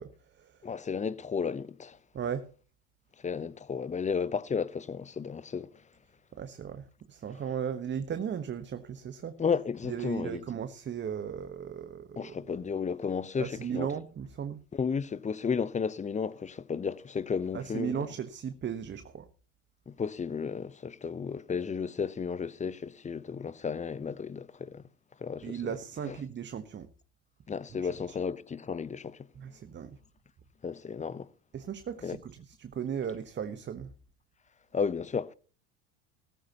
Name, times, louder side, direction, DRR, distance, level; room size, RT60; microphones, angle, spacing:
voice 1, 0.0-0.6 2.1-2.5 6.3-9.4 9.8-12.5 13.4-14.6 17.5-19.3 25.4-26.9 27.7-28.2 29.3-30.0 31.5-33.9, right 8 dB, 30° right, 1.2 m, -36 dB
voice 2, 0.6-2.0 3.2-5.7 9.4-10.4 12.2-13.9 14.7-18.1 19.9-24.8 25.2-25.6 26.1-26.2 27.5-29.2 30.6-31.3 32.0-32.2 34.7-35.3, left 6 dB, 20° left, 0.8 m, -33 dB
17.5 x 14.0 x 2.9 m
hypercardioid pair, 80°, 37 cm